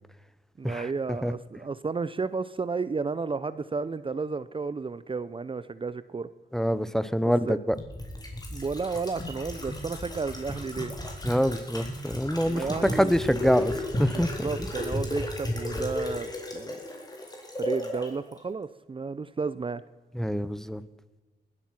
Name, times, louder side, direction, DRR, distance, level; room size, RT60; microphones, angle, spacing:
voice 1, 0.6-6.3 7.5-7.6 8.5-10.9 12.5-13.1 14.1-16.8 17.6-19.8, right 4 dB, 30° right, 15 dB, 0.6 m, -32 dB
voice 2, 6.5-7.8 11.2-12.6 12.9-13.7 14.0-14.5 20.1-20.8, equal, 5° left, 14 dB, 0.8 m, -25 dB
sound 1, 7.7-18.1 18.4-18.5, left 1 dB, 20° left, 3.9 m, -34 dB
19.5 x 12.0 x 5.9 m, 1.2 s
cardioid pair, 100°, 18 cm